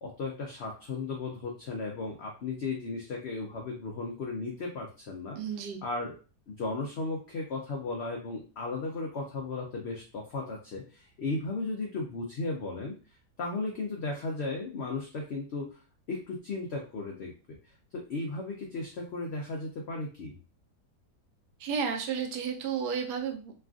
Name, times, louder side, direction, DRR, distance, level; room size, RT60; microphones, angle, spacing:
voice 1, 0.0-5.4 5.8-6.1 6.5-13.0 13.4-15.8 16.1-17.3 17.9-20.4, left 3 dB, 90° left, 0 dB, 0.5 m, -35 dB
voice 2, 5.3-5.8 21.6-23.5, right 6 dB, 85° right, 3 dB, 1.2 m, -32 dB
3.2 x 2.3 x 2.4 m, 0.35 s
omnidirectional pair, 1.8 m